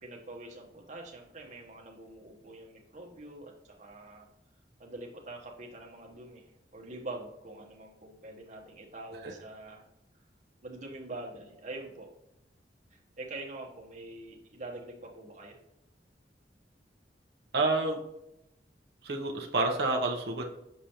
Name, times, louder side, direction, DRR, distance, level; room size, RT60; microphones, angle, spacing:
voice 1, 0.0-4.3 4.8-9.9 10.6-12.1 12.9-15.6, right 2 dB, 45° right, -1 dB, 1.1 m, -45 dB
voice 2, 17.5-18.0 19.0-20.4, right 2 dB, 65° right, 1 dB, 0.8 m, -28 dB
6.7 x 5.0 x 2.9 m, 0.86 s
head